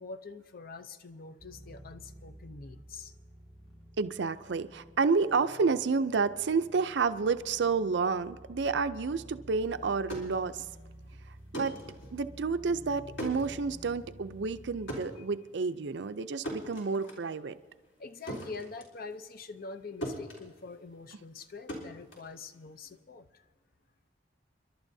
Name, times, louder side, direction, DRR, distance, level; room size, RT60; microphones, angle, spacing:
voice 1, 0.0-3.1 15.2-15.3 18.0-23.4, left 4 dB, 50° left, 11 dB, 0.6 m, -45 dB
sound 1, 1.4-15.0, equal, 5° left, 2.0 m, -51 dB
voice 2, 4.0-10.7 11.5-11.7 12.1-17.6, right 4 dB, 65° right, 11 dB, 0.5 m, -30 dB
sound 2, 10.0-19.8 20.0-23.0, equal, 80° left, 3.6 m, -43 dB
30.0 x 11.5 x 2.7 m, 1.3 s
head